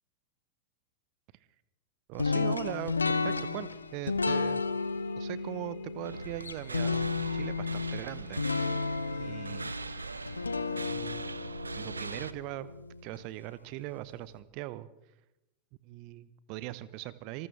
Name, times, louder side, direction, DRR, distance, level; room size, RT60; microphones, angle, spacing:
voice 1, 2.1-4.6 5.2-7.0 7.3-8.5 9.2-9.7 10.9-11.2 11.7-12.7 13.0-14.9 15.8-17.5, right 16 dB, 45° right, 17 dB, 0.8 m, -40 dB
sound 1, 2.2-13.2, left 4 dB, 80° left, 0.8 m, -33 dB
sound 2, 3.5-10.9, left 11 dB, 55° left, 2.1 m, -57 dB
sound 3, 6.0-12.3, right 3 dB, 80° right, 0.5 m, -41 dB
26.0 x 15.0 x 3.3 m, 0.89 s
figure-of-eight pair, 90°, 0 cm